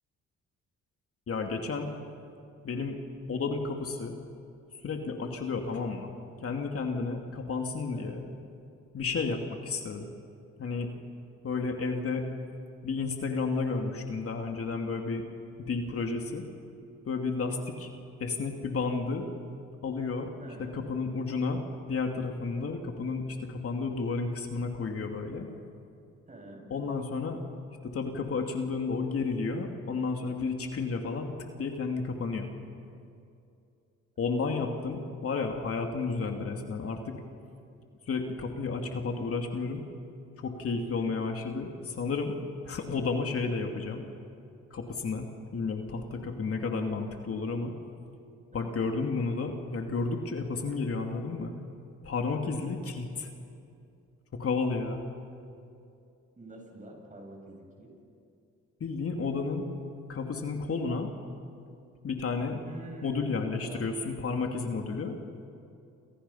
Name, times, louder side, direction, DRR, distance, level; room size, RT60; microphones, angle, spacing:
voice 1, 1.3-1.9 2.6-3.0 3.3-4.2 4.8-8.2 8.9-10.1 10.6-10.9 11.4-12.3 12.8-15.3 15.6-16.5 17.0-17.9 18.2-19.3 19.8-20.3 20.6-25.5 26.7-27.4 27.8-32.5 34.2-37.2 38.1-39.9 40.4-42.3 42.6-44.1 44.7-47.7 48.5-51.5 52.0-53.3 54.3-55.0 58.8-59.7 60.1-61.1 62.0-62.6 63.0-65.2, left 4 dB, 50° left, 3 dB, 2.6 m, -32 dB
voice 2, 7.9-8.3 20.4-20.9 26.3-26.7 40.9-41.1 48.5-48.8 52.4-52.7 56.4-58.0 62.7-63.9, right 1 dB, 25° right, 2 dB, 7.5 m, -47 dB
28.5 x 28.5 x 5.7 m, 2.5 s
cardioid pair, 90°, 30 cm